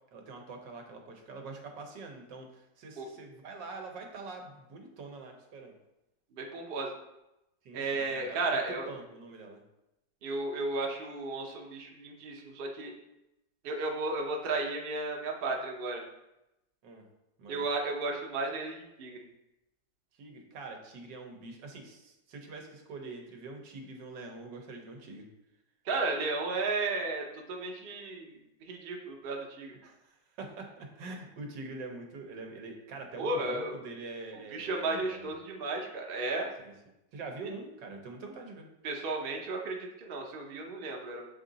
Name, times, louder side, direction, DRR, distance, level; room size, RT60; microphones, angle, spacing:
voice 1, 0.1-5.8 7.6-9.6 16.8-17.0 17.4-17.7 20.2-25.3 29.8-35.3 36.6-36.7 37.1-38.7, right 3 dB, 80° right, 2 dB, 1.6 m, -44 dB
voice 2, 6.3-6.9 7.7-8.9 10.2-12.9 13.6-16.0 17.5-19.2 25.8-29.7 33.2-33.8 34.5-36.5 38.8-41.2, right 3 dB, 45° right, 1 dB, 0.8 m, -34 dB
6.9 x 3.7 x 3.9 m, 0.91 s
omnidirectional pair, 1.9 m